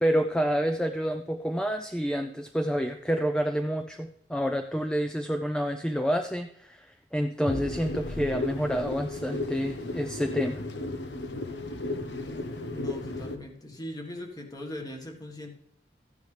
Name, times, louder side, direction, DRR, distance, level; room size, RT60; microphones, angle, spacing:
voice 1, 0.0-10.6, equal, 5° left, 6 dB, 0.4 m, -28 dB
sound 1, 7.5-13.4, left 2 dB, 80° left, 1.1 m, -34 dB
voice 2, 12.7-15.5, left 1 dB, 20° left, 2 dB, 1.6 m, -40 dB
14.0 x 9.5 x 3.3 m, 0.69 s
head